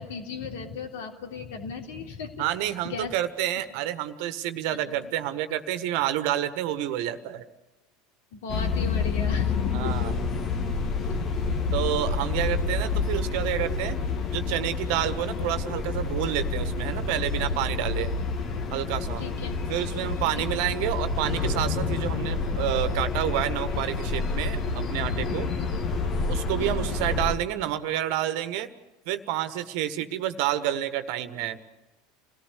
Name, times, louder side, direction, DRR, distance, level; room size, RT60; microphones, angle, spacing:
voice 1, 0.0-3.1 4.7-5.1 8.3-10.0 11.1-11.2 19.2-19.6 20.4-20.5 25.6-25.7 26.6-26.9, left 5 dB, 65° left, 3 dB, 3.5 m, -37 dB
voice 2, 2.4-7.4 9.7-10.1 11.7-14.0 14.3-18.1 18.7-19.2 19.7-25.5 26.3-28.7 29.1-31.6, right 12 dB, 55° right, 11 dB, 1.5 m, -29 dB
sound 1, 8.5-27.4, left 4 dB, 40° left, 2.1 m, -28 dB
28.0 x 18.0 x 8.3 m, 1.1 s
figure-of-eight pair, 75°, 0 cm